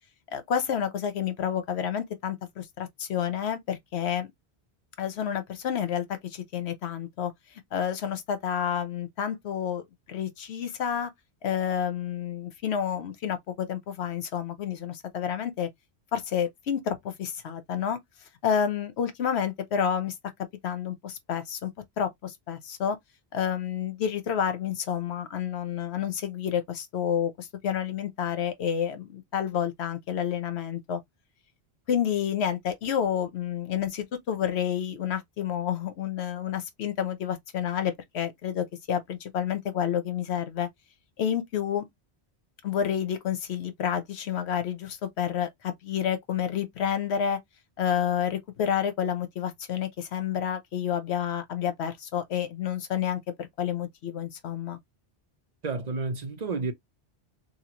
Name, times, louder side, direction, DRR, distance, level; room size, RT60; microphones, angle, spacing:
voice 1, 0.3-4.3 5.0-7.3 7.7-11.1 11.4-15.7 16.1-18.0 18.4-20.2 20.6-21.7 22.0-23.0 23.3-31.0 31.9-40.7 41.2-41.8 42.6-47.4 47.8-54.8, left 8 dB, 80° left, 1.0 m, -29 dB
voice 2, 55.6-56.7, right 3 dB, 45° right, 0.8 m, -30 dB
2.9 x 2.6 x 2.8 m
omnidirectional pair, 1.1 m